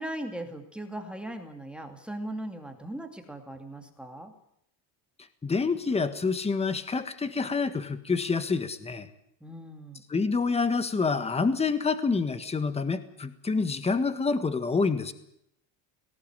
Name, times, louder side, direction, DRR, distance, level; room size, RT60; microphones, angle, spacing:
voice 1, 0.0-4.3 9.4-10.1, right 1 dB, ahead, 4 dB, 2.4 m, -38 dB
voice 2, 5.4-9.1 10.1-15.1, left 4 dB, 15° left, 11 dB, 1.5 m, -27 dB
19.0 x 18.0 x 8.9 m, 0.74 s
cardioid pair, 155°, 43 cm